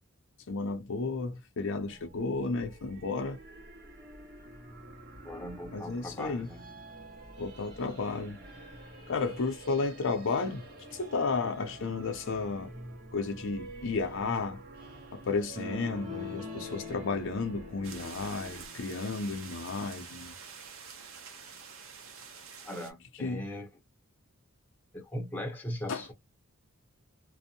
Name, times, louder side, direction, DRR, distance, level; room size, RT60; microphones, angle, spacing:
voice 1, 0.5-3.4 5.7-6.5 7.4-8.4 9.1-10.6 10.9-12.7 13.1-14.6 15.1-20.3 23.2-23.4 25.9-26.0, left 4 dB, 60° left, 0.5 m, -33 dB
sound 1, 1.8-18.7, right 2 dB, 45° right, 1.1 m, -48 dB
voice 2, 5.2-6.6 22.6-23.7 24.9-26.1, left 1 dB, 10° left, 0.6 m, -39 dB
sound 2, 15.6-19.1, left 4 dB, 25° right, 0.7 m, -44 dB
sound 3, 17.8-22.9, right 6 dB, 65° right, 0.7 m, -47 dB
2.5 x 2.0 x 2.7 m
head